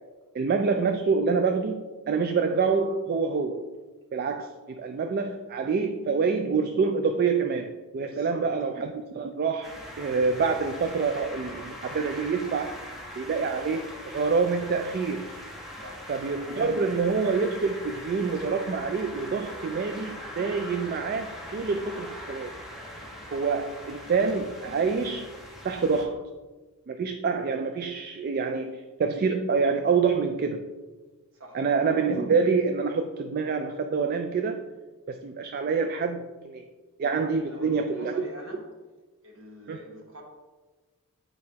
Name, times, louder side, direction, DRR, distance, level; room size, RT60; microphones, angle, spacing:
voice 1, 0.3-3.7 4.1-9.7 10.0-12.8 13.2-15.3 16.1-22.5 23.3-25.3 25.6-26.2 26.9-30.7 31.5-34.6 35.1-36.6 37.0-38.2 39.7-39.8, right 5 dB, 45° right, 6 dB, 0.3 m, -26 dB
voice 2, 8.1-8.5 15.8-16.1 31.3-31.6 37.4-38.6 39.2-40.2, equal, 60° right, 0 dB, 1.4 m, -44 dB
sound 1, 9.6-26.0, equal, ahead, 1.1 m, -41 dB
8.5 x 4.7 x 2.8 m, 1.3 s
head